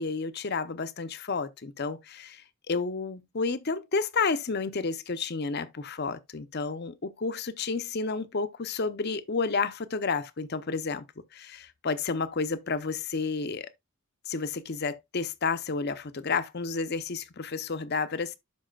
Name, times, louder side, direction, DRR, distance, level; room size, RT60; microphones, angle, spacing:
voice 1, 0.0-11.1 11.3-13.7 14.3-18.4, left 4 dB, 50° left, 0.7 m, -31 dB
11.5 x 4.8 x 2.3 m
head